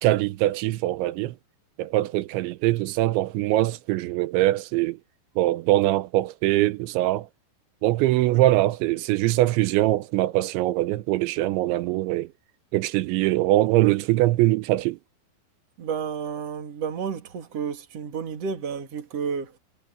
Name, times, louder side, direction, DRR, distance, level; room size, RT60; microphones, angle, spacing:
voice 1, 0.0-1.3 1.8-5.0 5.4-7.3 7.8-12.3 12.7-15.0, right 16 dB, 90° right, 3.1 m, -22 dB
voice 2, 15.8-19.5, right 6 dB, 40° right, 2.9 m, -31 dB
omnidirectional pair, 5.2 m